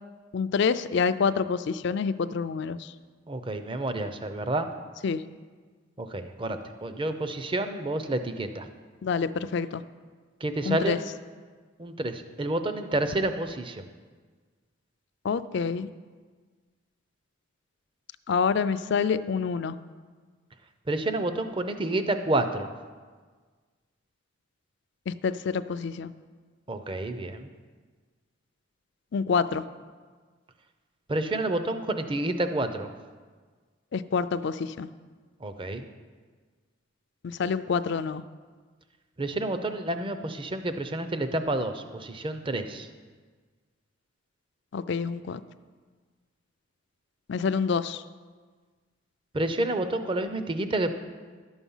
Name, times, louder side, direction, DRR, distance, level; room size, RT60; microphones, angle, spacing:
voice 1, 0.3-2.9 5.0-5.2 9.0-9.8 10.7-11.0 15.2-15.9 18.3-19.8 25.1-26.1 29.1-29.6 33.9-34.9 37.2-38.2 44.7-45.4 47.3-48.0, left 5 dB, 55° left, 13 dB, 0.4 m, -27 dB
voice 2, 3.3-4.7 6.0-8.7 10.4-11.0 11.8-13.8 20.9-22.7 26.7-27.5 31.1-32.9 35.4-35.8 39.2-42.9 49.3-50.9, right 2 dB, 25° right, 9 dB, 0.6 m, -29 dB
11.5 x 7.1 x 5.5 m, 1.5 s
head